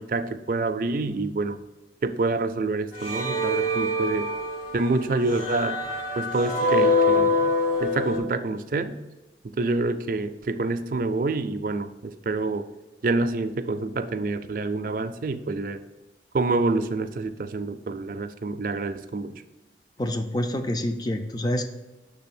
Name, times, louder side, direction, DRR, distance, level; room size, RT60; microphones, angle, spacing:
voice 1, 0.0-1.6 2.0-4.3 4.7-5.8 6.2-9.0 9.6-12.7 13.0-15.8 16.3-19.3, right 3 dB, 50° right, 8 dB, 0.4 m, -27 dB
sound 1, 2.9-8.2, left 2 dB, 45° left, 2.1 m, -25 dB
voice 2, 20.0-21.7, left 1 dB, 20° left, 7 dB, 0.4 m, -27 dB
6.2 x 3.4 x 5.9 m, 1.1 s
head